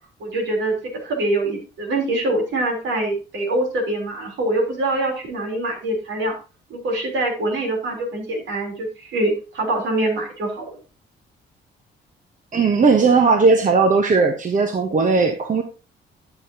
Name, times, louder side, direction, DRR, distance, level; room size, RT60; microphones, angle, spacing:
voice 1, 0.2-0.7 1.0-6.3 6.7-10.7, right 2 dB, 70° right, 1 dB, 3.7 m, -24 dB
voice 2, 12.5-15.6, right 4 dB, 40° right, 6 dB, 1.1 m, -17 dB
11.5 x 6.9 x 2.9 m, 0.32 s
cardioid pair, 90°, 20 cm